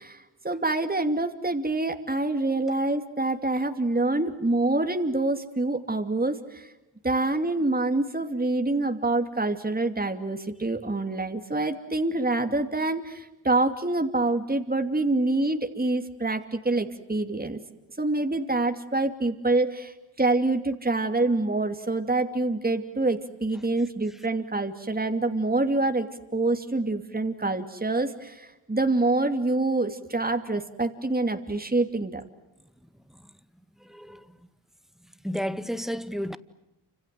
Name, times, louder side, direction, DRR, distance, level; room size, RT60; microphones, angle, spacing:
voice 1, 0.0-6.7 7.0-17.6 18.0-32.2, right 2 dB, 20° right, 2.7 m, -26 dB
voice 2, 33.8-34.4 35.2-36.4, equal, ahead, 1.8 m, -32 dB
29.0 x 26.5 x 7.7 m
supercardioid pair, 45°, 48 cm